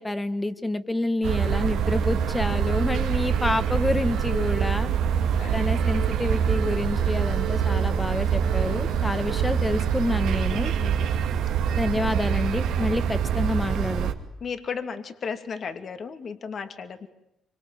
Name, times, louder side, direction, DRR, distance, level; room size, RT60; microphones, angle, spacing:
voice 1, 0.0-4.9 5.5-10.7 11.7-14.1, left 2 dB, 15° left, 11 dB, 1.8 m, -28 dB
sound 1, 1.2-14.1, right 8 dB, 85° right, 2.5 m, -25 dB
voice 2, 10.6-11.1 14.4-17.1, left 6 dB, 55° left, 8 dB, 2.5 m, -35 dB
25.5 x 25.0 x 9.2 m, 0.84 s
cardioid pair, 90°, 0 cm